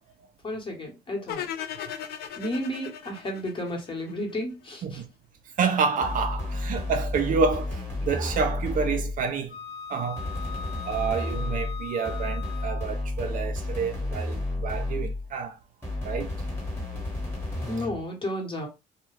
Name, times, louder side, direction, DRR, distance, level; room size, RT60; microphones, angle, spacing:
voice 1, 0.4-1.5 2.4-5.0 17.7-18.7, left 1 dB, 30° left, 1.0 m, -32 dB
sound 1, 1.3-4.4, left 10 dB, 70° left, 0.4 m, -37 dB
voice 2, 5.6-9.6 9.9-10.3 10.9-15.6 16.0-16.4, right 5 dB, 50° right, 0.4 m, -28 dB
sound 2, 6.0-9.3 10.2-15.3 15.8-18.0, left 2 dB, 15° left, 1.0 m, -31 dB
Wind instrument woodwind instrument, 9.5-13.1, left 6 dB, 85° left, 0.9 m, -40 dB
2.2 x 2.1 x 3.1 m
cardioid pair, 110°, 17 cm